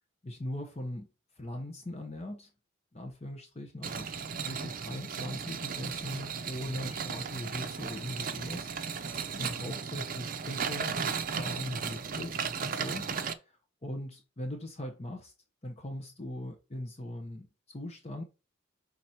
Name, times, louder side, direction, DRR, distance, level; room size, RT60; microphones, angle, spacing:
voice 1, 0.2-1.1 1.4-2.5 2.9-4.1 4.4-8.7 9.0-11.0 11.3-13.1 13.4-15.3 15.6-18.2, left 1 dB, 30° left, 1.0 m, -40 dB
sound 1, 3.8-13.3, right 6 dB, 45° right, 0.6 m, -35 dB
6.1 x 4.1 x 4.4 m
head